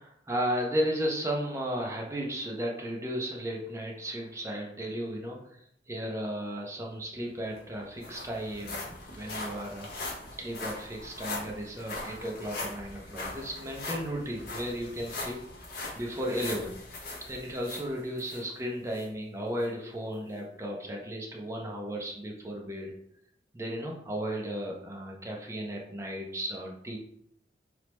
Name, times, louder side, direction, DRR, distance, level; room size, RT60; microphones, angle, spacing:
voice 1, 0.0-8.8 9.2-9.9 10.4-15.4 15.9-22.9 23.5-27.0, equal, 15° right, -1 dB, 0.5 m, -34 dB
sound 1, 7.2-7.3 7.6-18.4 18.9-19.1 19.6-19.7, left 2 dB, 55° left, 0.7 m, -40 dB
3.1 x 2.0 x 3.0 m, 0.73 s
head